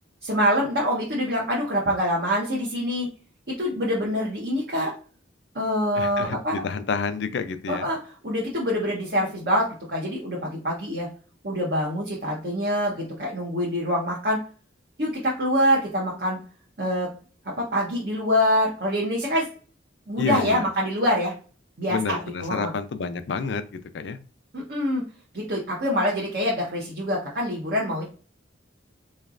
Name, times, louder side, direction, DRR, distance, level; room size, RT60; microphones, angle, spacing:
voice 1, 0.2-3.1 3.5-4.9 5.5-6.5 7.7-8.0 8.2-11.1 11.4-14.4 15.0-16.4 16.8-17.1 17.6-19.5 20.1-21.3 21.8-22.7 24.5-25.0 25.3-28.0, equal, 55° right, -3 dB, 0.9 m, -25 dB
voice 2, 5.9-7.9 20.2-20.6 21.9-24.2, left 5 dB, 70° left, 11 dB, 0.4 m, -29 dB
3.9 x 3.2 x 2.4 m, 0.39 s
head